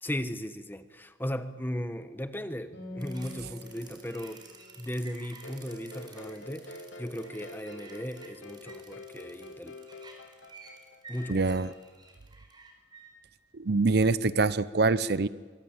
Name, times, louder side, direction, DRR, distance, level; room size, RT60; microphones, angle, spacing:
voice 1, 0.0-4.4 4.8-9.8 11.1-11.6, equal, 10° left, 10 dB, 1.1 m, -37 dB
Acoustic guitar, 2.7-6.5, left 2 dB, 65° left, 7.9 m, -47 dB
sound 1, 3.0-13.1, right 3 dB, 25° right, 4.3 m, -52 dB
sound 2, 5.4-11.7, left 1 dB, 85° left, 2.8 m, -47 dB
voice 2, 11.3-11.7 13.5-15.3, right 3 dB, 55° right, 16 dB, 0.7 m, -25 dB
24.5 x 22.0 x 8.9 m, 1.4 s
head